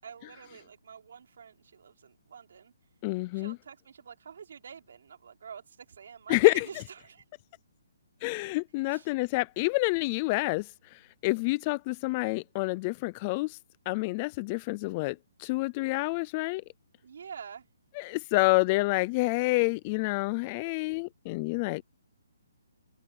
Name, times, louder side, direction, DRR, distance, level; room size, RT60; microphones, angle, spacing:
voice 1, 0.0-2.7 3.3-7.2 8.9-9.1 17.0-17.7, right 7 dB, 50° right, 4.5 m, -47 dB
voice 2, 3.0-3.5 6.3-6.7 8.2-13.6 13.9-16.6 18.0-21.8, left 24 dB, 20° left, 0.3 m, -28 dB
hypercardioid pair, 180°, 0 cm